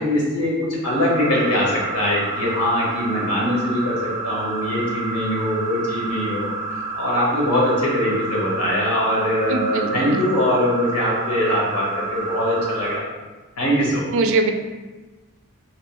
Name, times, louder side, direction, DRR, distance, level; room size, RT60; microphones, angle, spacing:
voice 1, 0.0-6.5 6.9-13.0 13.6-14.0, left 1 dB, 90° left, -4 dB, 1.1 m, -22 dB
sound 1, 0.8-13.0, right 3 dB, 15° right, 0.6 m, -30 dB
voice 2, 9.5-10.2 14.1-14.5, right 3 dB, 60° right, 6 dB, 0.3 m, -21 dB
3.0 x 3.0 x 3.0 m, 1.2 s
head